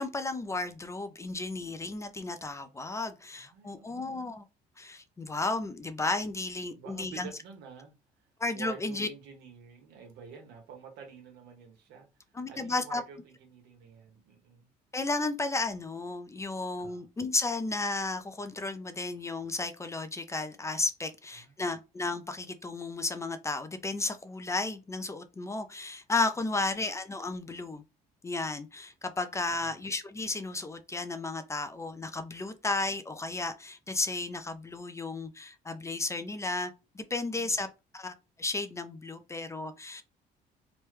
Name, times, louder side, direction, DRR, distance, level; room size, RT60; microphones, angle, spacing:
voice 1, 0.0-4.4 4.8-7.3 8.4-9.1 12.3-13.0 14.9-27.8 28.2-37.7 37.9-40.0, left 3 dB, 15° left, 0.3 m, -33 dB
voice 2, 3.3-4.3 6.7-7.9 8.5-14.7 16.8-17.0 21.4-21.8 29.5-29.8 37.4-37.6, right 6 dB, 85° right, 1.0 m, -49 dB
3.0 x 2.1 x 3.1 m
cardioid pair, 110°, 17 cm